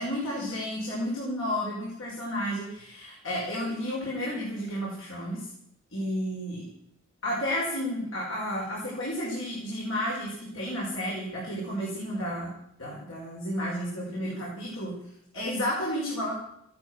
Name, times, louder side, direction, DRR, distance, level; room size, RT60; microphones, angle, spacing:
voice 1, 0.0-5.5 5.9-6.6 7.2-12.5 12.8-15.0 15.3-16.3, equal, 75° left, -4 dB, 6.0 m, -32 dB
16.5 x 13.5 x 6.4 m, 0.77 s
head